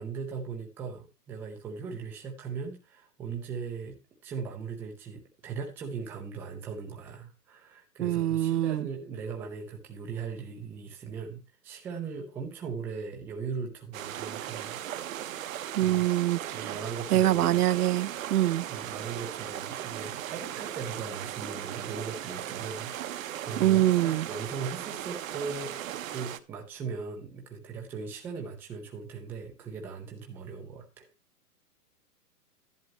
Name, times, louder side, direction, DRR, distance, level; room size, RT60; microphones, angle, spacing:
voice 1, 0.0-14.8 15.8-16.0 16.5-17.6 18.7-25.8 26.1-31.1, right 5 dB, 5° right, 0.5 m, -39 dB
voice 2, 8.0-8.9 15.7-16.8 17.1-18.7 23.6-24.3, right 13 dB, 70° right, 0.6 m, -25 dB
sound 1, 13.9-26.4, right 11 dB, 55° right, 1.0 m, -37 dB
11.0 x 10.5 x 3.0 m
hypercardioid pair, 150°, 47 cm